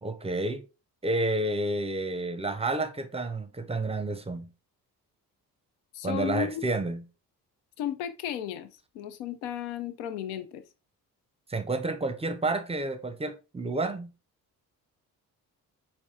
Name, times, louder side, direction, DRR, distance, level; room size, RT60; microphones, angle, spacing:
voice 1, 0.0-0.6 1.0-4.5 6.0-7.0 11.5-14.1, right 2 dB, 15° right, 0.6 m, -30 dB
voice 2, 5.9-6.6 7.8-8.7 8.9-10.6, left 10 dB, 70° left, 0.7 m, -34 dB
4.4 x 4.1 x 2.3 m
figure-of-eight pair, 40°, 48 cm